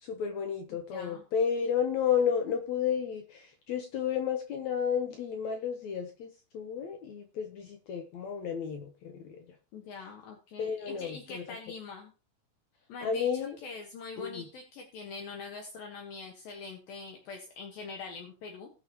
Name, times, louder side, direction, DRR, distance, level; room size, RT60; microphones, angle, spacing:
voice 1, 0.0-6.3 6.5-9.4 10.6-11.4 13.0-13.6 14.2-14.4, left 7 dB, 90° left, 5 dB, 1.5 m, -32 dB
voice 2, 0.7-1.2 9.7-12.1 12.9-18.7, left 4 dB, 65° left, 2 dB, 3.0 m, -44 dB
19.5 x 6.7 x 3.0 m, 0.33 s
omnidirectional pair, 4.7 m